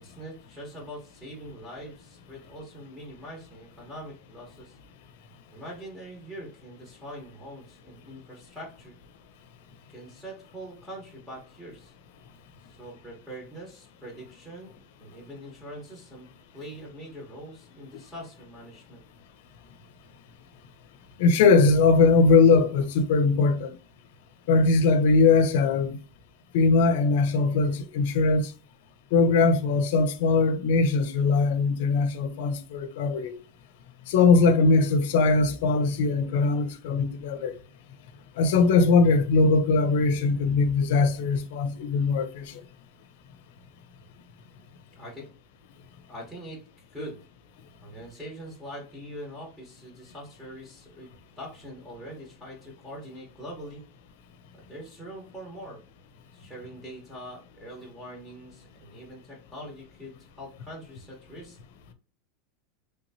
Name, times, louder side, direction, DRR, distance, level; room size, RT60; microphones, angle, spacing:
voice 1, 0.0-4.8 5.5-9.0 9.9-11.9 12.7-14.7 15.0-16.3 16.5-19.0 45.0-45.3 46.1-46.6 46.9-47.2 47.8-51.1 51.4-53.8 54.5-55.8 56.3-61.6, equal, 5° right, 1.1 m, -43 dB
voice 2, 21.2-23.7 24.5-26.0 26.5-28.5 29.1-33.3 34.1-37.5 38.4-42.6, left 4 dB, 65° left, 0.6 m, -21 dB
3.3 x 2.9 x 2.8 m
supercardioid pair, 160°, 0 cm